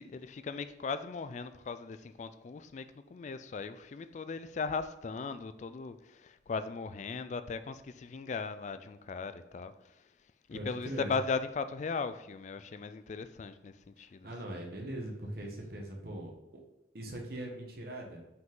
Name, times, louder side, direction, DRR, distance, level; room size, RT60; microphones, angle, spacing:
voice 1, 0.0-10.1 10.5-14.3, left 4 dB, 40° left, 0.3 m, -38 dB
voice 2, 10.5-11.1 14.0-16.3 16.9-18.2, right 1 dB, 55° right, 1.3 m, -41 dB
5.6 x 5.2 x 3.8 m
head